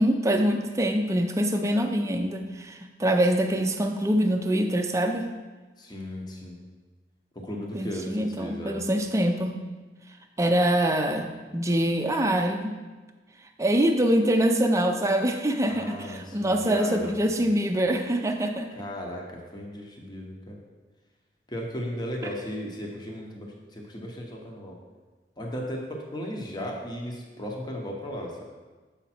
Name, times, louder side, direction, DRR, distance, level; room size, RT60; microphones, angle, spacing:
voice 1, 0.0-5.3 7.7-9.6 10.4-12.8 13.6-18.7, right 1 dB, 15° right, 4 dB, 0.5 m, -24 dB
voice 2, 5.8-6.6 7.3-8.9 15.7-17.5 18.7-20.6 21.5-24.8 25.4-28.4, equal, 25° left, 0 dB, 0.9 m, -36 dB
7.2 x 5.2 x 4.3 m, 1.3 s
head